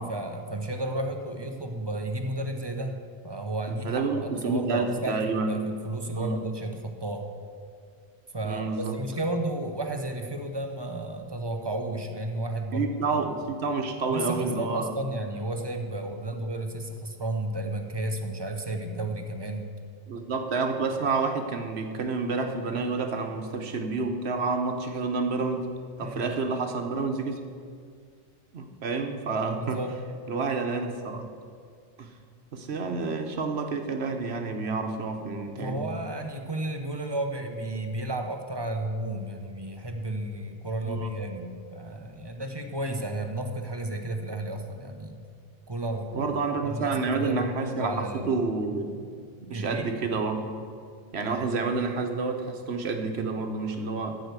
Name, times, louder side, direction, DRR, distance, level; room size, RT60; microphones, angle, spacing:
voice 1, 0.0-2.9 3.2-5.2 5.5-7.3 8.3-13.2 14.1-19.7 26.0-26.3 29.6-29.9 35.6-45.2 45.7-46.3 46.7-48.4 49.5-49.9, right 1 dB, 25° right, 5 dB, 0.8 m, -32 dB
voice 2, 3.7-5.7 6.1-6.4 8.4-9.0 12.7-15.0 20.1-25.7 26.0-27.4 28.5-29.8 30.3-31.3 32.0-32.1 32.5-35.9 40.8-41.1 46.1-49.0 49.4-50.4 51.1-54.2, right 4 dB, 75° right, 5 dB, 1.3 m, -29 dB
13.5 x 4.9 x 8.1 m, 2.1 s
omnidirectional pair, 1.1 m